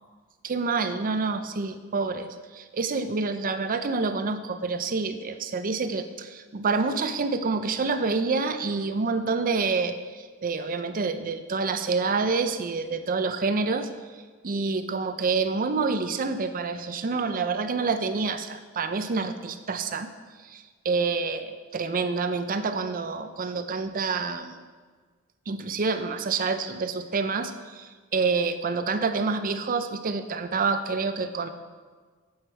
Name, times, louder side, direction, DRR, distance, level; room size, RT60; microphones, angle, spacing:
voice 1, 0.4-20.1 20.4-24.6 25.5-31.5, right 4 dB, 40° right, 9 dB, 0.5 m, -28 dB
8.0 x 8.0 x 4.5 m, 1.5 s
head